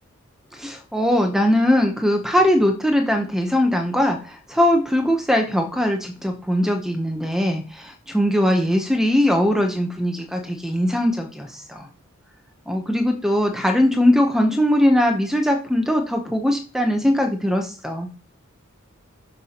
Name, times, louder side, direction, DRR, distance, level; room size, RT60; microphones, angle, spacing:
voice 1, 0.5-11.9 12.7-18.1, left 1 dB, ahead, 4 dB, 0.7 m, -20 dB
9.5 x 6.7 x 2.9 m, 0.37 s
head